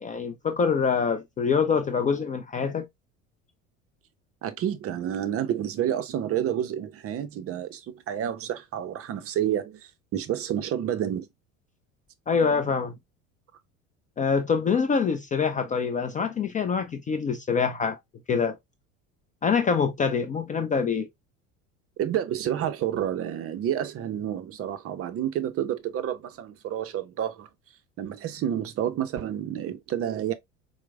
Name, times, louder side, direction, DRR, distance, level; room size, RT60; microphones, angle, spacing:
voice 1, 0.0-2.9 12.3-13.0 14.2-18.0 18.3-18.6 19.4-21.1, left 6 dB, 20° left, 0.3 m, -25 dB
voice 2, 4.4-11.3 22.0-27.5 28.0-30.3, right 10 dB, 35° right, 0.5 m, -29 dB
4.4 x 2.1 x 2.3 m
hypercardioid pair, 75°, 39 cm